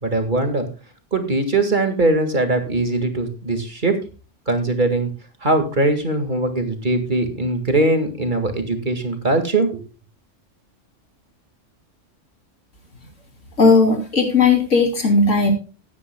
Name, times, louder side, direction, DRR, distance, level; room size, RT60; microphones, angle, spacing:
voice 1, 0.0-0.7 1.1-3.9 4.5-5.1 5.4-9.9, right 2 dB, 40° right, 6 dB, 2.0 m, -21 dB
voice 2, 13.6-15.5, left 3 dB, 80° left, 3 dB, 3.3 m, -16 dB
18.5 x 9.6 x 2.2 m, 0.34 s
omnidirectional pair, 1.3 m